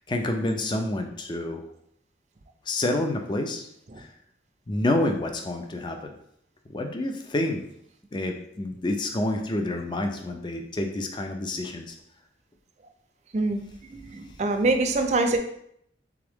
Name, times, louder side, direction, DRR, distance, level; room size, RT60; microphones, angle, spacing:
voice 1, 0.1-1.6 2.7-3.7 4.0-4.1 4.7-6.1 6.7-7.7 8.1-12.0, left 1 dB, 25° left, 4 dB, 0.4 m, -28 dB
voice 2, 13.9-15.4, right 2 dB, 40° right, 6 dB, 0.4 m, -24 dB
3.6 x 3.4 x 3.4 m, 0.72 s
head